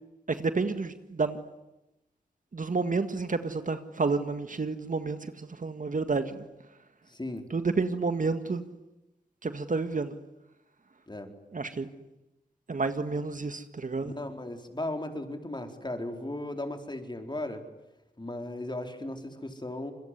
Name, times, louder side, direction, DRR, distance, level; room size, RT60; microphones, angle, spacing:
voice 1, 0.3-1.4 2.5-6.5 7.5-8.6 9.4-10.2 11.5-11.9 12.7-14.1, right 4 dB, 50° right, 9 dB, 1.8 m, -30 dB
voice 2, 7.1-7.5 11.1-11.3 14.0-17.6 18.2-19.9, left 1 dB, 25° left, 5 dB, 4.5 m, -36 dB
27.0 x 21.5 x 9.9 m, 0.95 s
cardioid pair, 40°, 17 cm